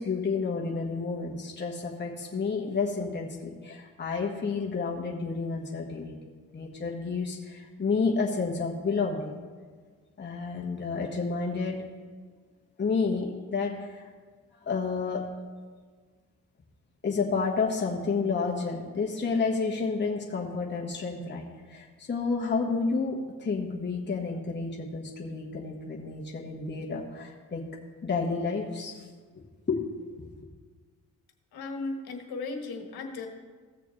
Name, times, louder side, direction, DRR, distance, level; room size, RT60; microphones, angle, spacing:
voice 1, 0.0-6.1 6.5-9.4 10.2-11.8 12.8-14.1 14.7-15.3 17.0-27.6 28.0-29.1 29.3-29.8, left 4 dB, 30° left, -2 dB, 1.4 m, -30 dB
voice 2, 31.5-33.3, left 3 dB, 80° left, 4 dB, 1.4 m, -36 dB
15.5 x 6.8 x 3.2 m, 1.5 s
supercardioid pair, 60°, 37 cm